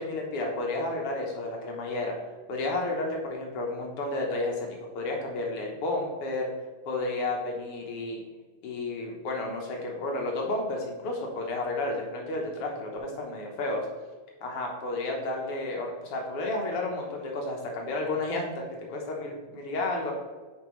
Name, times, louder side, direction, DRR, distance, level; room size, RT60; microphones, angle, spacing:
voice 1, 0.0-2.2 2.5-4.7 5.0-6.5 6.9-8.2 8.6-13.9 14.4-18.6 18.9-20.1, left 2 dB, 60° left, 0 dB, 1.9 m, -31 dB
9.2 x 4.7 x 3.1 m, 1.4 s
omnidirectional pair, 3.4 m